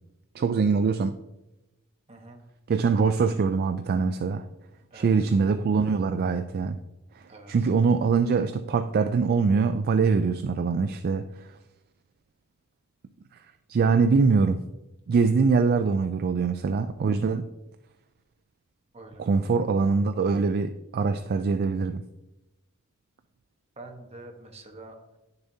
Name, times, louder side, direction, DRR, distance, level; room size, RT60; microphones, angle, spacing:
voice 1, 0.4-1.2 2.7-4.5 4.9-6.8 7.5-11.3 13.7-14.6 15.1-17.5 19.2-22.0, right 5 dB, 45° right, 0.3 m, -23 dB
voice 2, 2.1-2.4 4.9-5.3 7.3-7.7 18.9-19.7 23.8-25.0, right 2 dB, 30° right, 1.1 m, -46 dB
10.5 x 6.7 x 2.7 m
head